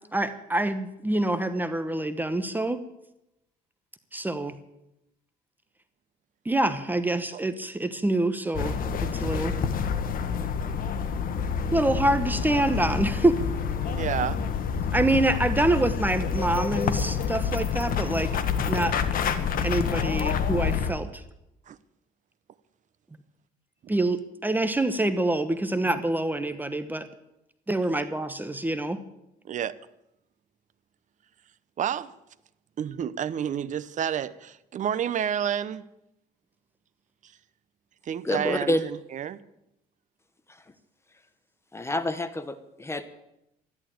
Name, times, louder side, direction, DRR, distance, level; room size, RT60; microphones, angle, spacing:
voice 1, 0.1-2.8 4.1-4.6 6.4-9.5 11.7-13.4 14.9-18.3 18.7-19.0 19.6-21.2 23.9-27.1 27.7-29.0, right 1 dB, 10° right, 1.0 m, -26 dB
sound 1, 8.5-20.9, left 6 dB, 55° left, 1.5 m, -28 dB
voice 2, 13.8-14.4 21.7-21.8 29.5-29.7 31.8-32.1 32.8-35.8 38.0-39.4, right 9 dB, 45° right, 0.9 m, -30 dB
voice 3, 38.2-38.8 41.7-43.0, left 1 dB, 15° left, 1.2 m, -28 dB
13.5 x 11.5 x 8.9 m
cardioid pair, 110°, 17 cm